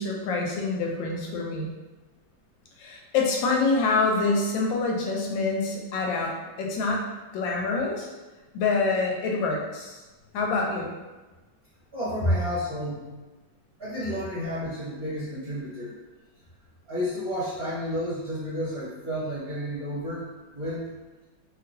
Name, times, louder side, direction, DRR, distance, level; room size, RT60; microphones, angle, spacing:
voice 1, 0.0-1.7 2.8-7.0 7.3-8.1 8.5-10.0 10.3-10.9, left 3 dB, 85° left, -1 dB, 1.3 m, -26 dB
voice 2, 11.9-13.1 13.8-16.0 16.9-20.3 20.5-20.9, equal, 40° right, -13 dB, 1.0 m, -31 dB
3.0 x 2.8 x 2.6 m, 1.2 s
omnidirectional pair, 2.0 m